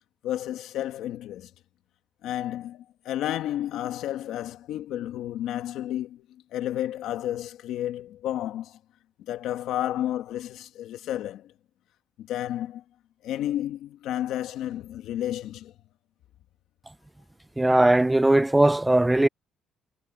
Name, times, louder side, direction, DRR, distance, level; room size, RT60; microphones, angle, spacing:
voice 1, 0.2-1.5 2.2-8.8 9.2-11.5 12.2-12.8 13.2-15.7, left 12 dB, 80° left, 2.0 m, -31 dB
voice 2, 17.6-19.3, right 1 dB, 10° right, 0.4 m, -19 dB
cardioid pair, 120°, 0 cm